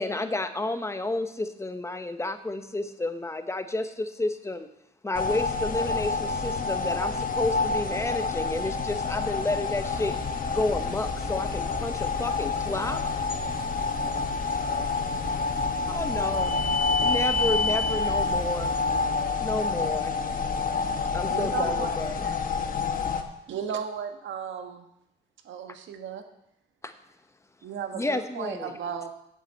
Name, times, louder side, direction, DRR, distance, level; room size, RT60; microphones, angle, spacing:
voice 1, 0.0-4.7 5.0-10.2 10.5-13.0 15.8-16.5 16.9-18.7 19.4-20.1 21.1-22.3 26.8-26.9 27.9-28.7, left 2 dB, 15° left, 9 dB, 0.9 m, -31 dB
sound 1, 5.1-23.2, left 4 dB, 45° left, 1.1 m, -28 dB
sound 2, 9.8-19.1, right 1 dB, 35° right, 3.0 m, -41 dB
voice 2, 14.0-15.6 21.3-21.8, left 4 dB, 75° left, -6 dB, 2.4 m, -52 dB
voice 3, 21.3-21.9 22.2-22.4 23.5-24.8 25.4-26.2 27.6-29.1, right 8 dB, 70° right, 7 dB, 1.3 m, -34 dB
8.2 x 7.5 x 7.3 m, 0.84 s
cardioid pair, 90°, 20 cm